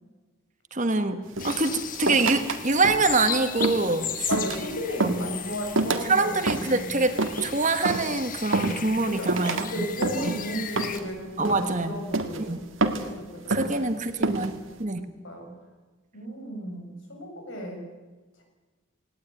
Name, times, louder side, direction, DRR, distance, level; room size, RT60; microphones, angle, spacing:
voice 1, 0.7-4.3 5.0-5.2 6.0-9.9 10.2-10.3 11.4-12.0 12.4-12.6 13.5-15.1, right 3 dB, 35° right, 8 dB, 1.5 m, -25 dB
sound 1, 1.4-11.0, left 8 dB, 40° left, 1.2 m, -36 dB
sound 2, 1.4-2.6 2.8-3.2 3.6-3.9 4.3-4.7 5.0-5.3 5.8-6.1 6.5-6.8 7.2-7.5 7.8-8.1 8.5-9.0 9.3-9.7 10.0-10.4 10.8-11.1 11.4-11.8 12.1-12.4 12.8-13.1 13.5-13.8 14.2-14.5, right 2 dB, 75° right, 1.9 m, -27 dB
voice 2, 4.3-6.4 6.7-7.0 9.1-12.6 13.2-13.9 15.2-15.5 16.1-17.8, equal, 70° left, 2 dB, 7.1 m, -34 dB
19.0 x 18.0 x 9.2 m, 1.3 s
head